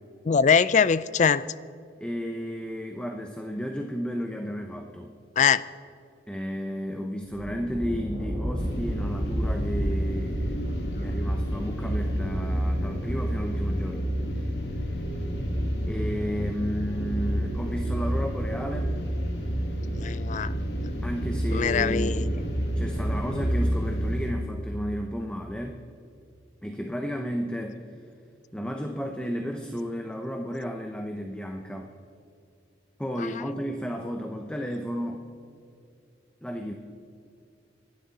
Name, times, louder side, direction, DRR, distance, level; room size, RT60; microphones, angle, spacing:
voice 1, 0.3-1.4 5.4-5.6 20.0-20.6 21.5-22.2 33.2-33.3, left 6 dB, 40° left, 0.4 m, -22 dB
voice 2, 2.0-5.1 6.3-14.1 14.3-14.5 15.9-19.0 21.0-22.2 22.8-25.8 26.6-27.8 28.5-31.9 33.0-35.3 36.4-36.7, equal, 5° left, 0.8 m, -33 dB
Thunder, 7.2-13.9, equal, 25° right, 2.6 m, -34 dB
sound 1, 8.6-24.3, equal, 75° left, 2.2 m, -29 dB
26.5 x 12.0 x 4.1 m
head